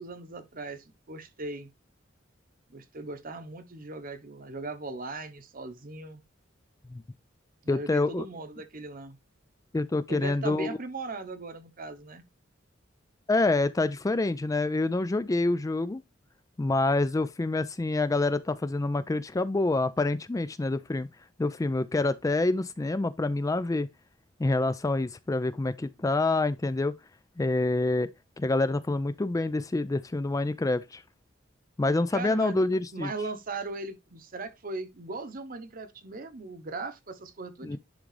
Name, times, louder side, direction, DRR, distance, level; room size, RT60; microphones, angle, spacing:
voice 1, 0.0-1.7 2.7-6.2 7.6-9.2 10.1-12.2 32.1-32.6 32.9-37.8, right 3 dB, 45° right, 1.0 m, -38 dB
voice 2, 7.7-8.2 9.7-10.8 13.3-16.0 16.6-21.1 21.4-23.9 24.4-27.0 27.4-31.0 31.8-33.1 37.6-37.8, left 2 dB, 15° left, 0.3 m, -27 dB
10.5 x 3.7 x 3.3 m
head